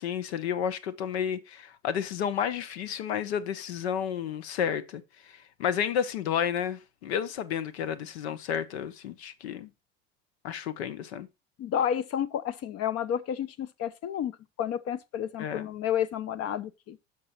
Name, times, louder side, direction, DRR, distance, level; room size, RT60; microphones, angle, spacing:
voice 1, 0.0-9.7 10.4-11.3 15.4-15.7, left 8 dB, 90° left, 0.7 m, -31 dB
voice 2, 11.6-14.3 14.6-17.0, left 9 dB, 50° left, 0.6 m, -30 dB
6.1 x 5.9 x 4.3 m
hypercardioid pair, 75°, 31 cm